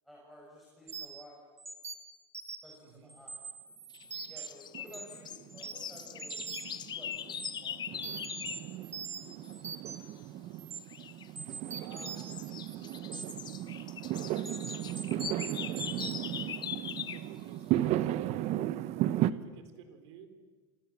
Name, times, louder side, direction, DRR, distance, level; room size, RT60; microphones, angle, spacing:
voice 1, 0.0-1.4 2.6-3.4 4.3-8.0 9.2-9.3 9.8-9.9, equal, ahead, -4 dB, 7.3 m, -54 dB
sound 1, 0.9-1.2 1.6-2.7 3.1-4.5 4.9-5.2 5.5-6.8 7.1-7.5 8.0-10.1 10.6-10.8 11.4-13.6 14.3-16.2, right 5 dB, 20° right, 3.2 m, -43 dB
voice 2, 2.8-3.2 11.7-13.2 15.1-18.7 19.1-20.3, right 6 dB, 80° right, 8 dB, 4.5 m, -54 dB
sound 2, 3.9-8.7 10.9-11.3 11.7-17.3, left 9 dB, 30° left, 1.3 m, -42 dB
Fireworks, 4.7-19.3, right 13 dB, 50° right, 1.1 m, -35 dB
29.0 x 26.5 x 7.5 m, 1.4 s
supercardioid pair, 125°, 14 cm